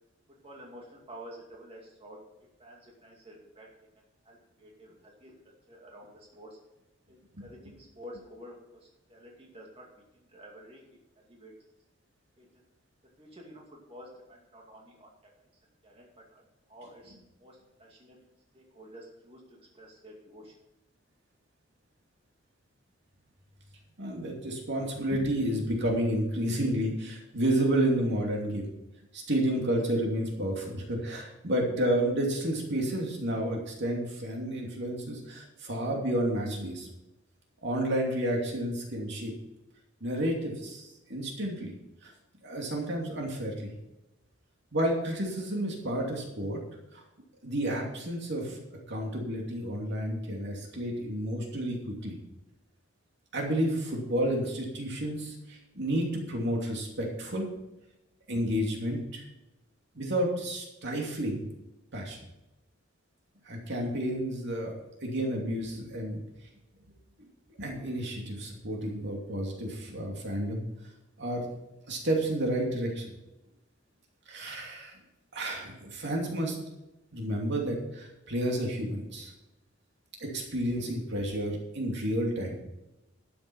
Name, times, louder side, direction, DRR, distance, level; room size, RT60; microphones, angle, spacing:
voice 1, 0.3-2.2 2.6-3.7 4.2-6.6 7.1-10.8 11.2-11.5 12.4-12.5 13.2-15.3 15.8-16.4 16.7-18.2 18.5-20.5, equal, 30° right, -1 dB, 2.4 m, -50 dB
voice 2, 24.0-28.6 29.1-36.9 37.6-39.3 40.0-41.7 42.0-42.1 42.4-43.7 44.7-46.6 46.9-47.0 47.4-48.6 48.9-52.1 53.3-57.5 58.3-59.2 60.0-61.4 61.9-62.3 63.4-64.7 65.0-66.2 67.6-70.6 71.2-71.5 71.9-73.1 74.3-75.0 75.3-76.6 77.1-79.3 80.2-82.6, right 1 dB, 60° right, 0 dB, 2.7 m, -31 dB
12.5 x 7.8 x 5.5 m, 0.94 s
head